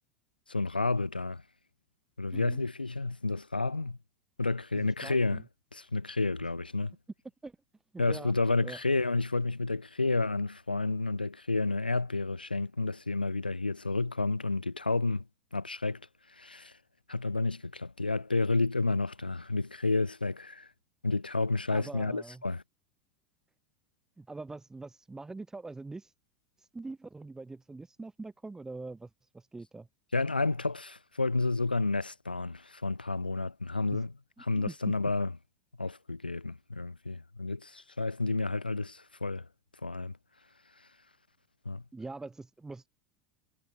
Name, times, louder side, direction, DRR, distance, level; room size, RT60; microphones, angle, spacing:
voice 1, 0.5-1.4 2.2-4.0 4.4-7.0 8.0-15.3 15.5-16.8 17.1-20.7 21.0-22.6 30.1-35.4 35.8-39.5 39.8-40.2 41.6-41.8, left 3 dB, 85° left, 2.4 m, -30 dB
voice 2, 4.7-5.4 7.4-7.5 8.1-8.3 8.6-8.8 21.7-22.4 24.2-26.1 26.6-29.1 29.3-29.9 33.9-34.0 34.5-34.7 41.9-42.9, right 3 dB, 10° right, 1.9 m, -43 dB
figure-of-eight pair, 80°, 5 cm